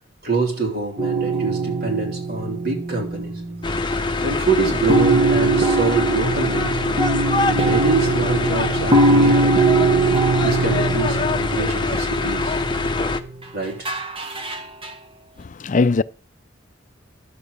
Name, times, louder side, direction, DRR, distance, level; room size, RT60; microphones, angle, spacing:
voice 1, 0.2-3.4 4.2-6.8 7.5-9.6 10.4-12.6 13.5-13.9, right 4 dB, 55° right, 3.6 m, -25 dB
sound 1, 1.0-3.9 4.2-4.3 4.9-13.4 13.9-14.9, right 3 dB, 30° right, 1.3 m, -21 dB
sound 2, 3.6-13.2, left 3 dB, 25° left, 0.9 m, -23 dB
voice 2, 15.4-16.0, left 4 dB, 40° left, 0.4 m, -20 dB
11.0 x 7.5 x 4.9 m
head